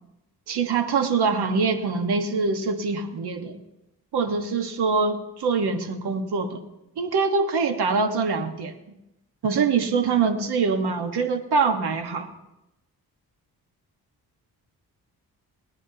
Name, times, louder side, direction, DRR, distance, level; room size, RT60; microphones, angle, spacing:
voice 1, 0.5-3.6 4.1-6.6 7.0-8.7 9.4-12.3, right 4 dB, 75° right, 7 dB, 1.5 m, -24 dB
29.0 x 9.8 x 2.9 m, 0.92 s
cardioid pair, 65°, 39 cm